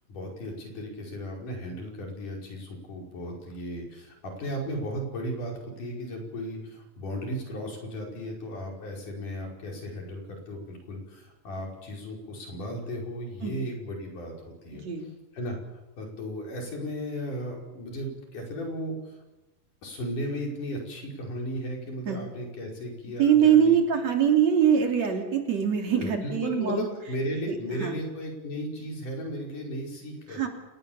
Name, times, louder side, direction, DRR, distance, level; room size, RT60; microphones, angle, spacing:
voice 1, 0.1-14.3 14.6-19.2 19.8-23.8 25.9-30.4, equal, 90° left, 1 dB, 6.8 m, -35 dB
voice 2, 14.7-15.0 22.1-22.2 23.2-26.9 27.5-27.9 30.3-30.5, right 8 dB, 60° right, 3 dB, 4.4 m, -23 dB
29.0 x 19.0 x 7.2 m, 1.0 s
omnidirectional pair, 3.5 m